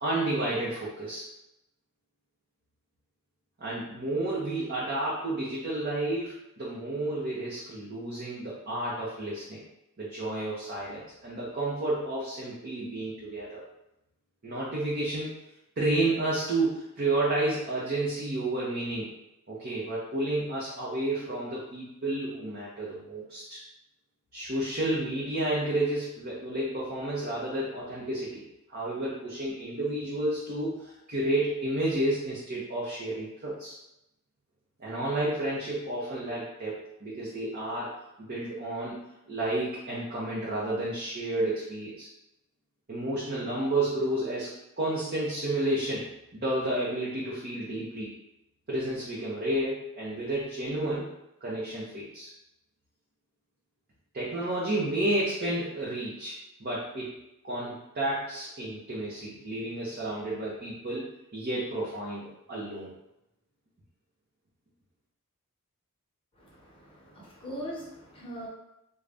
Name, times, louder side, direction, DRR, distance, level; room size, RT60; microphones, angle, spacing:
voice 1, 0.0-1.2 3.6-9.6 10.0-13.6 14.4-15.4 15.8-19.1 19.5-23.6 24.3-28.4 28.7-33.8 34.8-37.9 38.3-42.1 42.9-46.0 46.3-48.1 48.7-51.0 51.4-52.3 54.1-57.2 57.4-61.1 61.3-62.9, right 1 dB, 45° right, -6 dB, 0.7 m, -31 dB
voice 2, 66.4-68.5, equal, 25° left, -5 dB, 0.9 m, -41 dB
3.8 x 2.2 x 3.4 m, 0.86 s
head